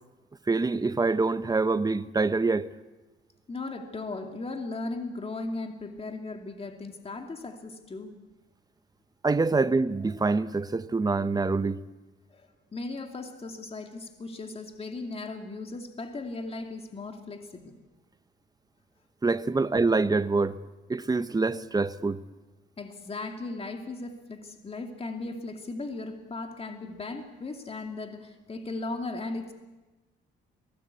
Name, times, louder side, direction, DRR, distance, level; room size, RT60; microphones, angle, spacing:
voice 1, 0.5-2.7 9.2-11.8 19.2-20.6 20.9-22.2, right 3 dB, 20° right, 1.0 m, -25 dB
voice 2, 3.5-8.1 12.3-17.7 22.8-29.5, left 3 dB, 30° left, 2.5 m, -37 dB
23.0 x 19.0 x 8.3 m
cardioid pair, 90°, 20 cm